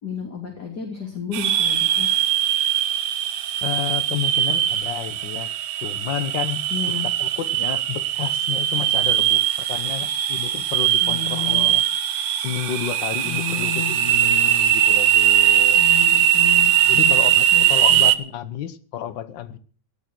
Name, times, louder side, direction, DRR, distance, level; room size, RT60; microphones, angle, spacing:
voice 1, 0.0-2.1 6.7-7.1 11.0-11.7 13.2-14.0 15.7-17.2 17.5-17.6 17.9-18.0, left 7 dB, 35° left, 2 dB, 3.3 m, -31 dB
sound 1, 1.3-18.2, right 11 dB, 70° right, 2.2 m, -20 dB
voice 2, 3.6-5.5 5.8-6.7 7.2-11.8 12.4-15.8 16.9-19.6, left 10 dB, 70° left, 14 dB, 1.1 m, -31 dB
18.0 x 13.0 x 4.6 m, 0.42 s
omnidirectional pair, 3.4 m